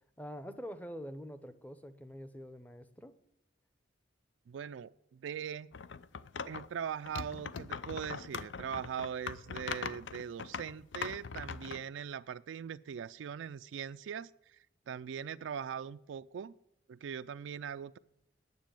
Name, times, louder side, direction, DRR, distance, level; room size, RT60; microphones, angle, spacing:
voice 1, 0.2-3.1, equal, 10° left, 11 dB, 0.7 m, -45 dB
voice 2, 4.5-5.7 6.4-14.6 14.9-16.5 16.9-18.0, right 7 dB, 85° right, 12 dB, 0.3 m, -41 dB
sound 1, 5.7-6.7 7.1-11.8, left 6 dB, 75° left, 0.5 m, -41 dB
9.4 x 7.4 x 9.0 m, 0.79 s
head